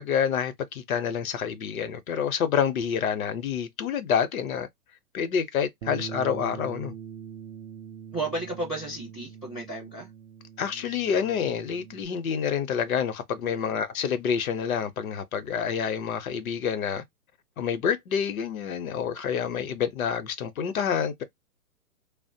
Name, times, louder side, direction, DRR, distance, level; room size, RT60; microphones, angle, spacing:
voice 1, 0.0-4.7 5.1-7.0 10.6-17.0 17.6-21.2, left 7 dB, 65° left, 0.7 m, -28 dB
Bass guitar, 5.8-12.1, right 7 dB, 55° right, 0.5 m, -42 dB
voice 2, 8.1-10.1 13.4-13.7, right 2 dB, ahead, 0.4 m, -33 dB
2.9 x 2.0 x 2.7 m
hypercardioid pair, 145°, 46 cm